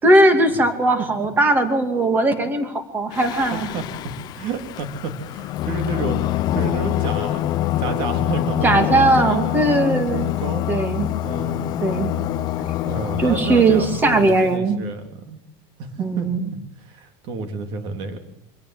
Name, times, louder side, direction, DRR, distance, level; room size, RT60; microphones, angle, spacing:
voice 1, 0.0-3.7 8.6-10.3 10.7-11.1 11.8-12.1 13.2-14.8 16.0-16.5, right 2 dB, 15° right, 8 dB, 2.5 m, -18 dB
Singing, 3.1-14.5, left 13 dB, 30° left, 0.8 m, -25 dB
voice 2, 3.5-3.8 4.3-9.5 10.1-10.7 11.2-11.7 12.8-15.4 15.8-16.3 16.8-18.2, right 4 dB, 40° right, 7 dB, 3.4 m, -30 dB
24.5 x 17.5 x 7.8 m, 0.78 s
supercardioid pair, 175°, 13 cm